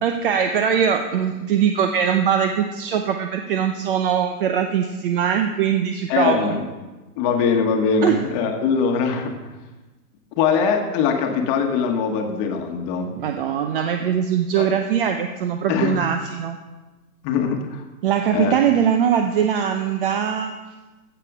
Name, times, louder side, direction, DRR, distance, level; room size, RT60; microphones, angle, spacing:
voice 1, 0.0-6.6 8.0-8.2 13.2-16.6 18.0-20.5, right 8 dB, 35° right, 6 dB, 0.6 m, -21 dB
voice 2, 6.1-6.7 7.2-9.3 10.4-13.1 14.6-14.7 15.7-16.0 17.2-17.8 18.3-18.5, left 6 dB, 30° left, 4 dB, 1.3 m, -22 dB
15.5 x 6.8 x 4.9 m, 1.2 s
hypercardioid pair, 140°, 47 cm